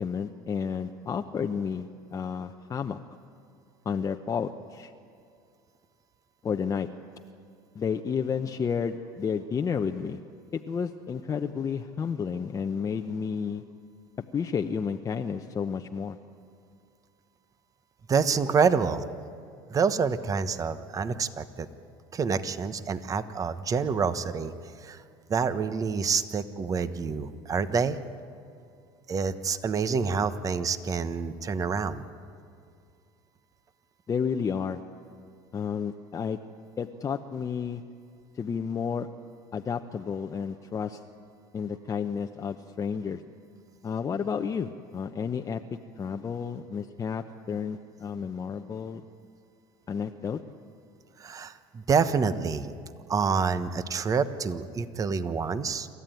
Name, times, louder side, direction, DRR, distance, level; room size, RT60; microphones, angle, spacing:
voice 1, 0.0-3.0 3.8-4.9 6.4-6.9 7.7-10.2 10.5-13.6 14.3-16.2 34.1-34.8 35.5-36.4 36.8-37.8 38.3-39.1 39.5-41.0 41.5-43.2 43.8-45.6 46.0-49.0 49.9-50.4, left 6 dB, 30° left, 5 dB, 0.8 m, -31 dB
voice 2, 18.1-19.0 19.7-21.7 22.1-24.5 24.8-25.0 25.3-28.0 29.1-32.0 51.2-52.7 53.1-55.9, right 5 dB, 30° right, 12 dB, 1.1 m, -27 dB
27.5 x 14.5 x 9.3 m, 2.3 s
supercardioid pair, 100°, 11 cm